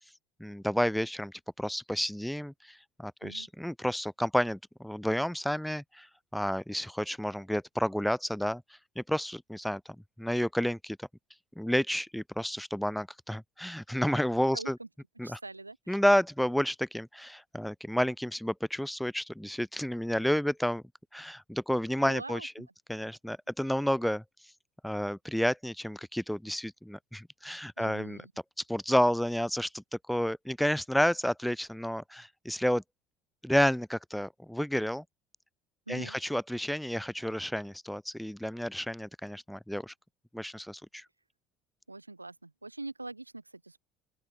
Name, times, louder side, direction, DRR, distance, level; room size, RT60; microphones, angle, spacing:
voice 1, 0.4-6.1 6.3-8.6 9.0-9.8 10.2-11.0 11.6-14.8 15.2-15.4 15.9-20.8 21.1-24.2 24.8-28.2 28.7-32.8 33.4-35.0 35.9-39.9 40.3-41.0, equal, ahead, 1.0 m, -30 dB
voice 2, 14.5-14.9 15.2-16.0 22.0-22.5 27.8-28.3 35.9-36.2 41.9-43.8, right 2 dB, 90° right, 4.9 m, -43 dB
open air
figure-of-eight pair, 65°, 0 cm